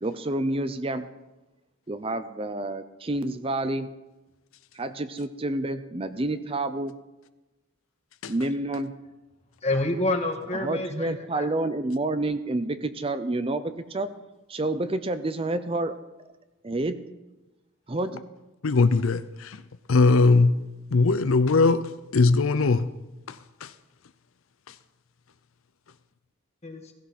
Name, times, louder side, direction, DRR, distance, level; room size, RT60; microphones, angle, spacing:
voice 1, 0.0-1.1 1.9-3.9 4.7-7.0 8.3-8.9 10.6-14.1 14.5-15.9 16.6-17.0 17.9-18.2, right 2 dB, 25° right, 0.6 m, -29 dB
voice 2, 9.6-11.5 26.6-26.9, left 2 dB, 30° left, 1.6 m, -28 dB
voice 3, 18.6-19.6 19.9-20.5 20.9-22.9 23.3-23.4 23.6-23.7, left 3 dB, 75° left, 0.6 m, -20 dB
16.5 x 15.5 x 4.3 m
head